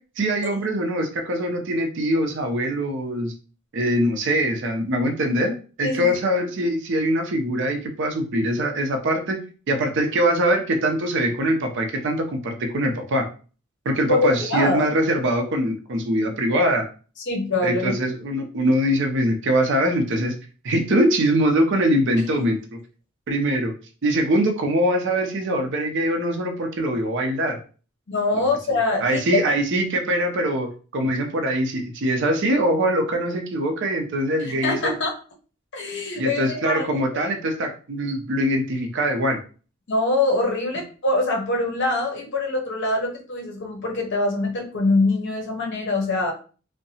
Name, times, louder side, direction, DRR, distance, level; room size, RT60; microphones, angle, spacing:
voice 1, 0.2-3.3 3.7-9.4 9.7-13.3 13.9-16.8 17.6-20.3 20.6-22.8 23.3-23.7 24.0-27.6 29.0-34.9 36.2-39.4, right 1 dB, 60° right, 3 dB, 0.5 m, -23 dB
voice 2, 14.1-14.9 17.3-17.9 28.1-29.4 34.6-35.1 35.7-37.2 39.9-46.3, left 2 dB, 60° left, 1 dB, 0.7 m, -24 dB
2.7 x 2.1 x 2.7 m, 0.37 s
head